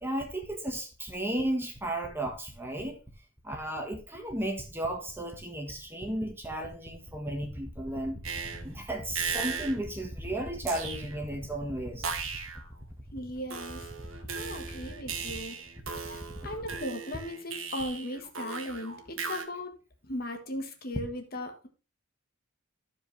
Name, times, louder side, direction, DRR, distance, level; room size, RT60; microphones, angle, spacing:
voice 1, 0.0-3.0 3.4-8.2 8.6-12.1, right 1 dB, 10° right, 1.5 m, -34 dB
sound 1, 8.2-8.7 9.2-9.9 10.7-11.3 12.0-12.7 13.5-19.4, right 6 dB, 80° right, 1.4 m, -37 dB
voice 2, 13.1-13.9 14.3-15.6 16.0-19.7 20.1-21.7, left 1 dB, 45° left, 1.4 m, -37 dB
14.0 x 5.0 x 3.3 m
head